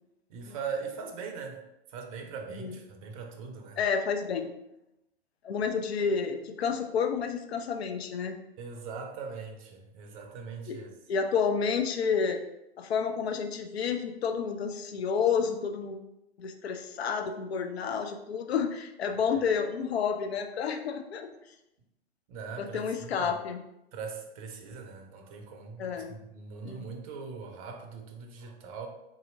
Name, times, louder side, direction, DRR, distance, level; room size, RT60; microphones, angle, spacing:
voice 1, 0.3-1.6 1.9-3.8 8.6-10.9 19.1-19.4 22.3-23.4 23.9-28.9, right 5 dB, 35° right, 5 dB, 0.5 m, -41 dB
voice 2, 3.8-4.5 5.4-8.4 10.7-10.8 11.1-12.4 12.8-16.0 16.4-21.3 22.6-23.6 25.8-26.2 26.6-26.9, left 6 dB, 70° left, 5 dB, 0.5 m, -30 dB
3.9 x 2.7 x 2.5 m, 0.87 s
figure-of-eight pair, 110°, 33 cm